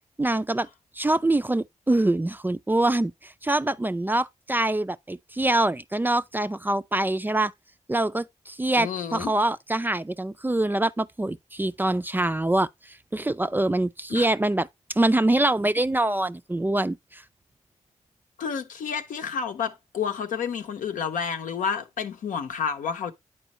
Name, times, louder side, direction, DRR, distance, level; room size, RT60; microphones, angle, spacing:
voice 1, 0.2-0.7 1.0-7.5 7.9-12.7 13.1-17.2, right 2 dB, 15° right, 0.3 m, -24 dB
voice 2, 8.8-9.3 14.1-14.3 18.4-23.1, left 6 dB, 80° left, 0.7 m, -30 dB
9.0 x 4.4 x 2.9 m
cardioid pair, 50°, 13 cm